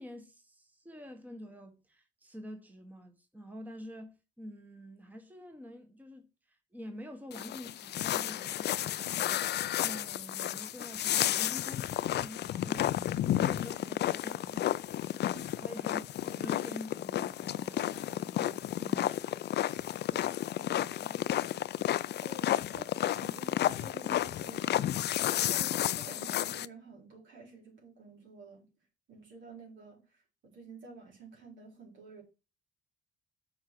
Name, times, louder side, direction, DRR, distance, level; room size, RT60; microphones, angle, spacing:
voice 1, 0.0-14.8 15.6-19.9, equal, 10° right, 1.3 m, -48 dB
sound 1, 7.3-26.7, left 12 dB, 60° left, 0.4 m, -32 dB
voice 2, 20.5-21.5 22.2-28.7 29.1-32.2, right 3 dB, 70° right, 4.1 m, -51 dB
7.6 x 4.9 x 6.1 m
cardioid pair, 90°, 20 cm